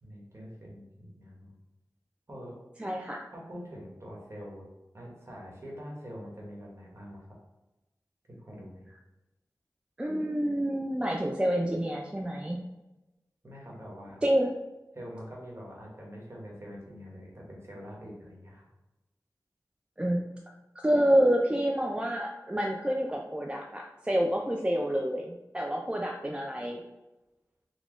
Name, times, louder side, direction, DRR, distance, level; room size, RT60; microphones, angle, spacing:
voice 1, 0.0-1.6 2.3-2.5 3.3-4.7 4.9-7.3 8.3-8.9 13.4-14.2 14.9-18.6, equal, 45° right, -3 dB, 1.2 m, -44 dB
voice 2, 2.8-3.3 10.0-12.6 14.2-14.5 20.0-20.2 20.8-26.8, equal, 15° right, 0 dB, 0.3 m, -28 dB
4.0 x 2.3 x 3.0 m, 1.0 s
cardioid pair, 45°, 6 cm